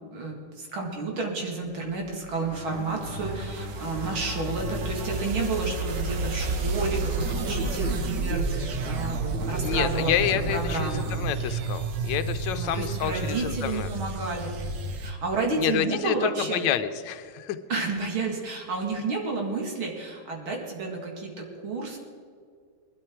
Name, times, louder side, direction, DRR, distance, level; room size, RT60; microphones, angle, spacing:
voice 1, 0.1-11.2 12.5-14.5 15.0-16.6 17.7-22.0, right 3 dB, 85° right, 0 dB, 3.0 m, -31 dB
sound 1, 2.3-8.0, equal, 40° right, 2.2 m, -38 dB
sound 2, 2.3-15.1, right 3 dB, 60° right, 1.6 m, -31 dB
voice 2, 9.6-13.9 15.6-17.6, left 10 dB, 70° left, 10 dB, 1.3 m, -28 dB
20.0 x 12.0 x 4.6 m, 2.1 s
omnidirectional pair, 2.2 m